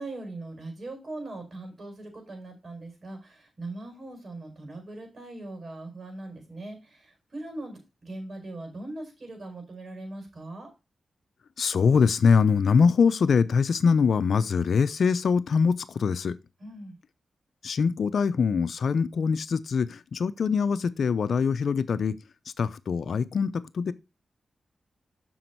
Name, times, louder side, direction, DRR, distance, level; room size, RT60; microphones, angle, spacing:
voice 1, 0.0-10.7 16.6-16.9, right 2 dB, 55° right, 5.0 m, -40 dB
voice 2, 11.6-16.3 17.6-22.2 22.6-23.9, left 5 dB, 75° left, 0.6 m, -23 dB
7.7 x 6.3 x 4.6 m
cardioid pair, 65°, 0 cm